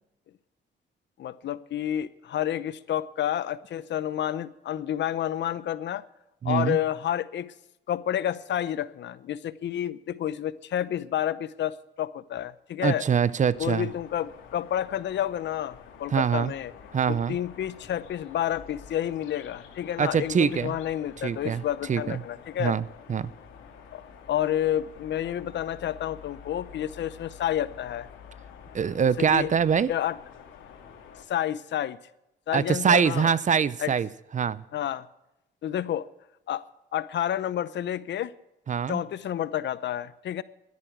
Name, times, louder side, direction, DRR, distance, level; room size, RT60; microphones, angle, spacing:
voice 1, 1.2-6.0 6.4-7.5 7.9-13.0 13.6-16.7 17.1-22.8 23.9-24.0 24.3-28.1 29.3-29.5 29.9-30.2 31.3-32.0 32.5-33.3 33.8-33.9 34.7-35.1 35.6-36.1 36.5-36.6 36.9-38.3 38.9-40.4, left 11 dB, 65° left, 0.8 m, -30 dB
voice 2, 6.4-6.8 12.8-13.9 16.1-16.5 16.9-17.4 20.0-20.7 21.2-21.6 21.9-22.2 22.6-23.3 28.7-29.9 32.5-34.1 34.3-34.6 38.7-39.0, right 7 dB, 40° right, 0.6 m, -24 dB
sound 1, 13.5-31.2, left 7 dB, 85° left, 2.7 m, -48 dB
12.5 x 10.5 x 7.9 m
cardioid pair, 90°, 20 cm